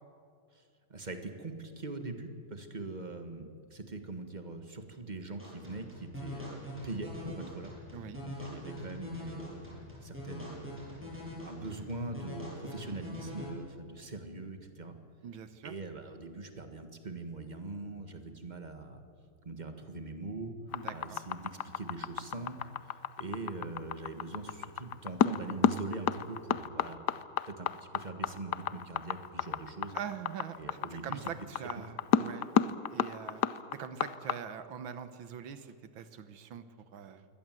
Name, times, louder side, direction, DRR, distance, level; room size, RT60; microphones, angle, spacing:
voice 1, 0.9-7.7 8.2-14.9 15.6-19.0 19.4-20.5 20.9-22.7 23.2-27.0 27.5-27.7 27.9-30.0 30.6-31.2, right 3 dB, 25° right, 7 dB, 1.5 m, -42 dB
sound 1, 5.4-13.4, left 1 dB, 5° right, 8.1 m, -43 dB
voice 2, 15.2-15.7 20.7-21.2 29.9-33.4 33.7-36.7 36.9-37.3, right 8 dB, 75° right, 12 dB, 1.9 m, -43 dB
sound 2, 20.7-34.3, left 10 dB, 65° left, 1.1 m, -30 dB
23.5 x 18.0 x 7.7 m, 2.3 s
omnidirectional pair, 2.2 m